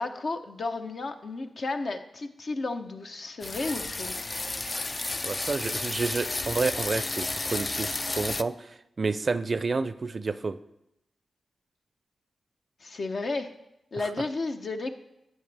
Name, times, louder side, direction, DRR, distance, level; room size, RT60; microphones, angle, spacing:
voice 1, 0.0-4.1 12.8-13.5 13.9-14.9, left 3 dB, 60° left, 6 dB, 0.8 m, -33 dB
sound 1, 3.4-8.4, left 3 dB, 40° left, 0.3 m, -32 dB
voice 2, 5.0-10.6 14.0-14.1, right 4 dB, 50° right, 14 dB, 0.4 m, -30 dB
12.0 x 8.1 x 3.4 m, 0.87 s
supercardioid pair, 45°, 0 cm